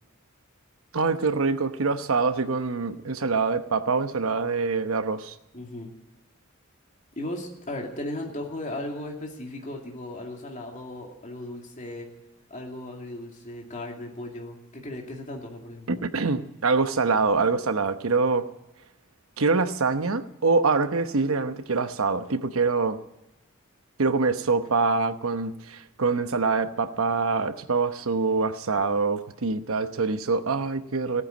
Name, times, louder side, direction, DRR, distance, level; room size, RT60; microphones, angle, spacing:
voice 1, 0.9-5.3 15.9-18.4 19.4-23.0 24.0-31.2, right 4 dB, 80° right, 10 dB, 1.0 m, -25 dB
voice 2, 5.5-5.9 7.2-12.1 12.5-16.0, left 1 dB, 35° left, 0 dB, 2.5 m, -36 dB
15.5 x 9.5 x 9.3 m, 0.94 s
head